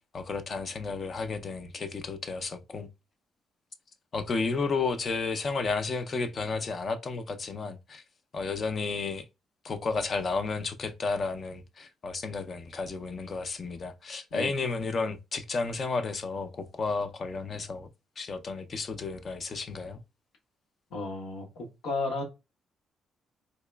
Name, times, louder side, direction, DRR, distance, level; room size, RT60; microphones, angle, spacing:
voice 1, 0.1-2.9 4.1-8.0 8.3-9.3 9.6-17.9 18.2-20.0, left 4 dB, 45° left, 0.5 m, -32 dB
voice 2, 20.9-22.2, left 3 dB, 85° left, 1.0 m, -33 dB
3.9 x 2.9 x 2.2 m
cardioid pair, 90°, 0 cm